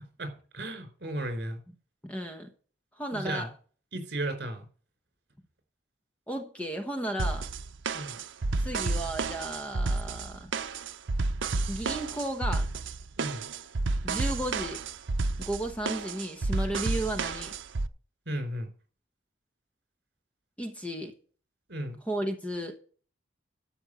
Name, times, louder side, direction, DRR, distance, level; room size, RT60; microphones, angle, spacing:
voice 1, 0.2-1.6 3.1-3.5 3.9-4.7 7.9-8.2 13.2-13.5 18.3-18.7 21.7-22.0, right 1 dB, 60° right, 4.0 m, -34 dB
voice 2, 2.0-2.5 3.0-3.5 6.3-7.5 8.6-10.5 11.7-12.7 14.0-14.8 15.4-17.5 20.6-21.1 22.0-22.8, right 1 dB, 5° left, 1.1 m, -34 dB
sound 1, 7.2-17.9, right 3 dB, 80° right, 0.7 m, -31 dB
13.0 x 5.4 x 7.7 m
head